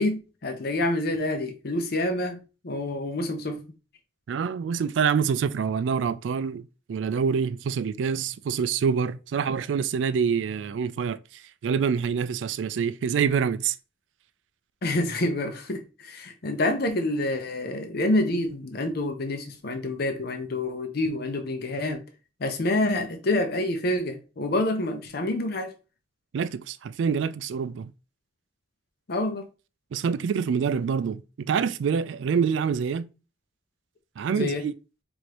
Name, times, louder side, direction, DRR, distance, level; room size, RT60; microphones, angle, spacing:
voice 1, 0.0-2.4 2.6-3.6 14.8-22.0 22.4-25.7 29.1-29.4 34.3-34.7, left 1 dB, 60° left, 0.6 m, -27 dB
voice 2, 4.3-13.8 26.3-27.9 29.9-33.1 34.2-34.7, right 6 dB, 85° right, 0.3 m, -26 dB
4.7 x 2.6 x 2.9 m
head